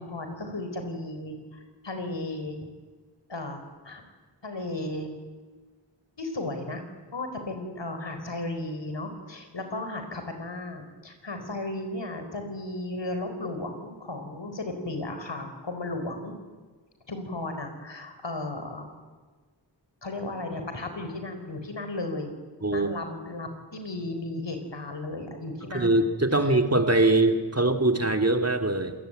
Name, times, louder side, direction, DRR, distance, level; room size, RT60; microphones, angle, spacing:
voice 1, 0.0-2.6 3.3-4.0 4.4-5.1 6.2-6.8 7.1-16.3 17.1-18.9 20.0-22.3 22.7-26.1 26.4-26.5, left 2 dB, 75° left, 6 dB, 4.6 m, -35 dB
voice 2, 22.6-22.9 25.7-28.9, right 2 dB, 35° right, 6 dB, 2.5 m, -22 dB
27.0 x 20.0 x 9.2 m, 1.4 s
wide cardioid pair, 65°, 43 cm